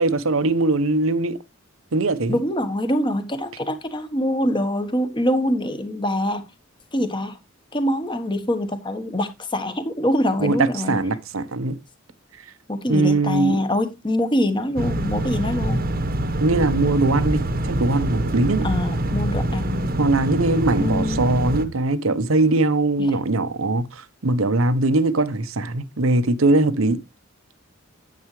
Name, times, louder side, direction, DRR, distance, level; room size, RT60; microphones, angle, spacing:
voice 1, 0.0-1.4 1.9-2.4 10.4-11.8 12.9-13.6 16.4-18.7 20.0-27.0, right 2 dB, 80° right, 0.9 m, -21 dB
voice 2, 2.3-6.4 6.9-7.4 7.7-11.0 12.7-15.9 18.6-19.9 20.8-21.4, left 1 dB, 25° left, 1.2 m, -24 dB
sound 1, 14.8-21.6, right 1 dB, 45° right, 1.1 m, -25 dB
9.3 x 8.7 x 3.2 m
head